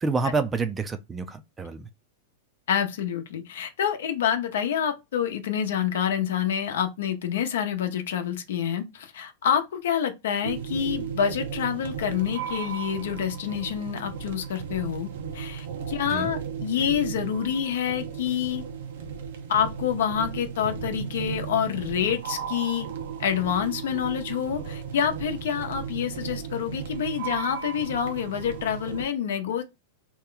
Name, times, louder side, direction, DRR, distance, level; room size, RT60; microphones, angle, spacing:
voice 1, 0.0-1.9 16.1-16.3, right 4 dB, 15° right, 0.4 m, -28 dB
voice 2, 2.7-18.6 19.5-22.9 23.2-29.6, left 8 dB, 75° left, 0.7 m, -27 dB
sound 1, 10.4-29.0, right 7 dB, 75° right, 0.7 m, -35 dB
2.9 x 2.2 x 3.8 m
hypercardioid pair, 125°, 0 cm